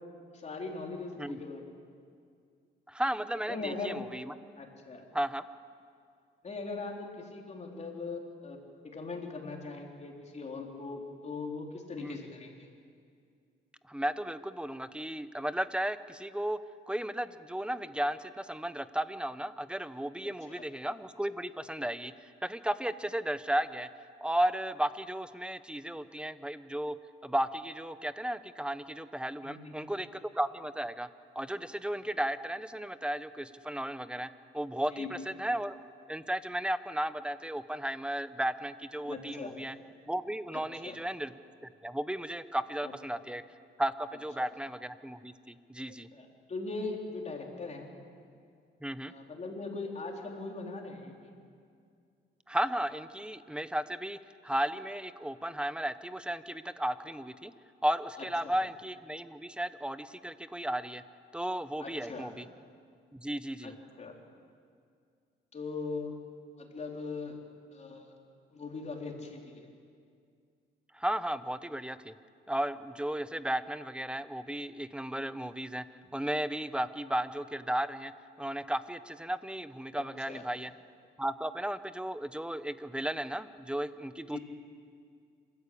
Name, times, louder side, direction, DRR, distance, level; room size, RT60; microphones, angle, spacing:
voice 1, 0.3-1.6 3.5-4.0 4.6-5.1 6.4-8.6 8.8-12.5 20.5-20.6 29.4-29.7 34.9-35.1 39.0-39.5 40.5-41.0 42.8-43.2 46.1-47.9 49.1-51.3 58.4-58.6 61.8-62.3 63.6-63.7 64.0-64.1 65.5-66.2 66.6-67.4 67.7-68.1 68.5-69.7 79.9-80.4 84.3-84.4, left 3 dB, 35° left, 1 dB, 3.8 m, -40 dB
voice 2, 2.9-4.3 5.1-5.4 12.0-12.2 13.9-16.6 16.9-23.9 24.2-27.0 27.2-31.1 31.3-34.3 34.5-35.7 36.1-39.8 40.1-41.3 41.8-43.4 43.8-46.1 48.8-49.1 52.5-57.5 57.8-61.0 61.3-62.5 63.1-63.7 70.9-72.1 72.5-75.8 76.1-78.1 78.4-80.7 81.2-84.4, right 1 dB, 5° right, 13 dB, 0.8 m, -34 dB
27.5 x 13.5 x 8.6 m, 2.2 s
cardioid pair, 90°, 20 cm